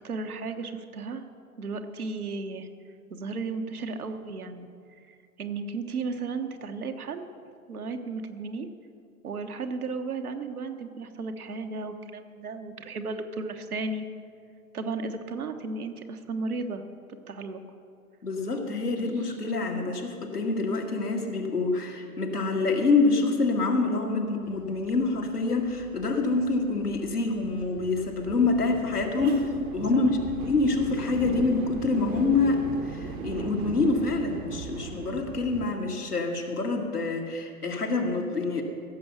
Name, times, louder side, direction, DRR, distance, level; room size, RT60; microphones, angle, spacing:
voice 1, 0.0-1.2 1.6-2.7 3.1-4.7 5.4-7.3 7.7-8.7 9.2-14.1 14.7-16.8 17.3-17.6 19.0-19.1 29.2-30.0, right 3 dB, 70° right, 6 dB, 1.3 m, -34 dB
voice 2, 18.2-38.6, left 3 dB, 85° left, 1 dB, 2.0 m, -26 dB
sound 1, 24.4-35.7, right 4 dB, 20° right, 0.8 m, -39 dB
16.0 x 7.1 x 6.9 m, 2.4 s
figure-of-eight pair, 100°, 45 cm